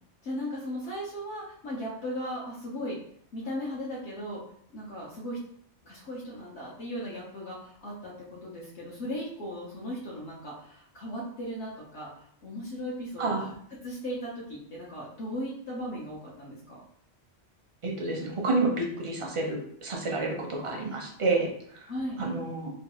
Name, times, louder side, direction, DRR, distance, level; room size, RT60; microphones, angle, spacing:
voice 1, 0.2-3.0 3.3-4.4 4.7-5.4 5.8-13.4 13.8-16.8 21.9-22.2, equal, 70° left, -5 dB, 1.1 m, -37 dB
voice 2, 17.8-21.9 22.2-22.7, right 3 dB, 40° right, 0 dB, 0.5 m, -29 dB
3.1 x 2.3 x 2.9 m, 0.63 s
omnidirectional pair, 1.2 m